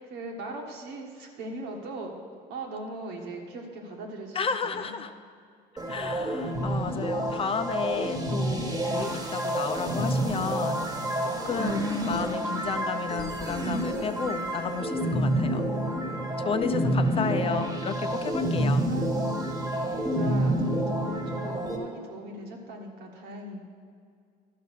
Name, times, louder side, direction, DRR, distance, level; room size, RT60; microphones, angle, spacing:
voice 1, 0.0-2.1 2.5-5.0 17.1-17.7 18.8-19.3 20.1-23.6, right 2 dB, 85° right, 1 dB, 1.7 m, -40 dB
voice 2, 4.3-5.1 5.9-10.8 11.2-15.7 16.4-18.8, left 6 dB, 35° left, 9 dB, 0.6 m, -32 dB
sound 1, 5.8-21.8, right 1 dB, 20° right, 1.5 m, -28 dB
12.0 x 5.4 x 6.4 m, 2.3 s
cardioid pair, 110°, 17 cm